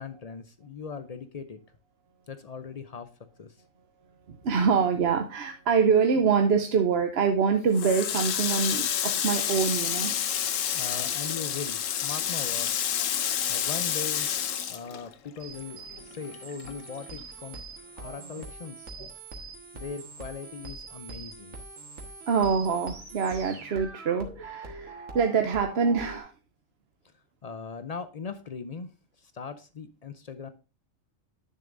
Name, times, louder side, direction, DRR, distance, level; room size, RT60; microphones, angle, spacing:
voice 1, 0.0-1.6 2.3-3.1 3.4-3.6 10.7-12.9 13.5-14.3 14.7-17.6 17.9-19.1 19.7-21.6 27.4-28.9 29.2-30.5, left 5 dB, 55° left, 10 dB, 0.4 m, -39 dB
voice 2, 4.3-10.1 18.0-18.4 19.0-19.1 22.3-26.3, right 6 dB, 55° right, 5 dB, 0.9 m, -25 dB
Water tap faucet, 7.7-15.6 15.9-17.2, left 9 dB, 75° left, 1.1 m, -29 dB
sound 1, 15.4-26.2, right 3 dB, 80° right, 1.9 m, -43 dB
10.5 x 6.8 x 2.5 m, 0.31 s
omnidirectional pair, 1.4 m